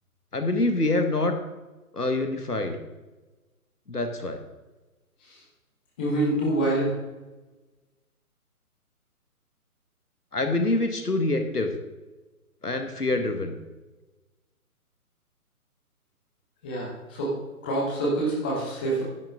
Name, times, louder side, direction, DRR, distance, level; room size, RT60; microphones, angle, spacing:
voice 1, 0.3-1.4 1.9-2.8 3.9-4.4 10.3-11.7 12.6-13.6, left 2 dB, 80° left, 6 dB, 1.7 m, -25 dB
voice 2, 6.0-6.9 16.6-17.3 17.6-19.0, right 1 dB, 5° left, -4 dB, 0.7 m, -26 dB
10.5 x 10.5 x 3.7 m, 1.1 s
figure-of-eight pair, 140°, 45 cm